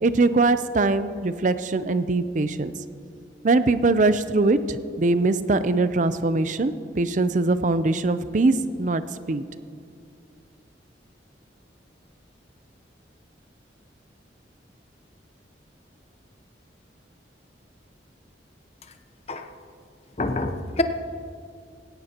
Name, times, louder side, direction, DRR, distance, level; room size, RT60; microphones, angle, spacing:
voice 1, 0.0-2.7 3.4-9.0 9.3-9.5, right 3 dB, 45° right, 12 dB, 0.5 m, -22 dB
voice 2, 20.2-20.8, left 2 dB, 35° left, 7 dB, 0.8 m, -26 dB
17.0 x 17.0 x 2.9 m, 2.3 s
head